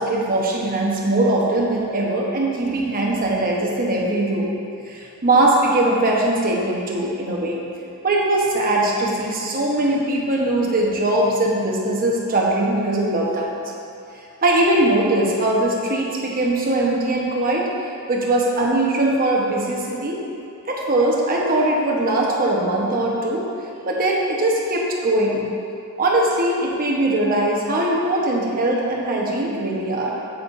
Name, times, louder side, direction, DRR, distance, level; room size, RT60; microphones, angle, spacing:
voice 1, 0.0-4.5 4.9-7.6 8.0-13.6 14.4-17.7 18.1-20.2 20.7-23.4 23.9-25.5 26.0-30.2, right 1 dB, 40° right, -2 dB, 1.1 m, -21 dB
8.5 x 8.2 x 2.7 m, 2.6 s
head